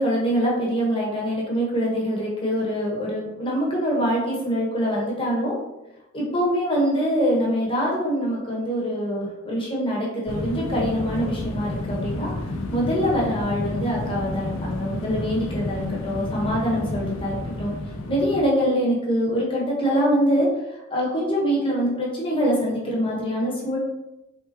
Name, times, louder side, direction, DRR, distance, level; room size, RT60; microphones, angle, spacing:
voice 1, 0.0-5.5 6.1-12.3 12.7-17.7 18.1-23.8, equal, 25° left, -4 dB, 1.1 m, -24 dB
sound 1, 10.3-18.4, left 2 dB, 80° left, 0.5 m, -30 dB
4.4 x 3.4 x 2.9 m, 0.95 s
head